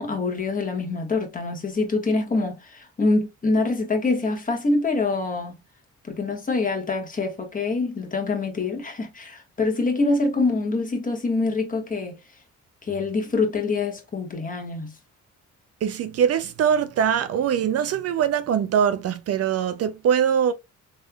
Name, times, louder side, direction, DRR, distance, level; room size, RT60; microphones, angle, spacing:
voice 1, 0.0-5.5 6.0-12.2 12.8-14.9, left 3 dB, 25° left, 1.3 m, -25 dB
voice 2, 15.8-20.5, right 8 dB, 55° right, 0.4 m, -22 dB
3.5 x 3.2 x 2.2 m
cardioid pair, 90°, 30 cm